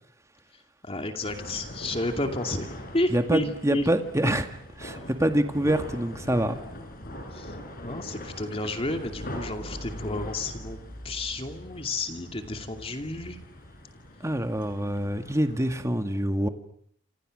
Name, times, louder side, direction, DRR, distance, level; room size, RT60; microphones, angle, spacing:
voice 1, 0.8-3.9 4.2-4.4 7.3-7.6 7.8-10.8 11.0-13.4, left 2 dB, 30° left, 5 dB, 2.6 m, -31 dB
sound 1, 1.2-15.7, left 1 dB, 50° left, 4.9 m, -41 dB
voice 2, 3.1-4.5 4.8-6.6 14.2-16.5, right 1 dB, 15° right, 7 dB, 2.0 m, -25 dB
28.0 x 27.5 x 6.6 m, 0.67 s
head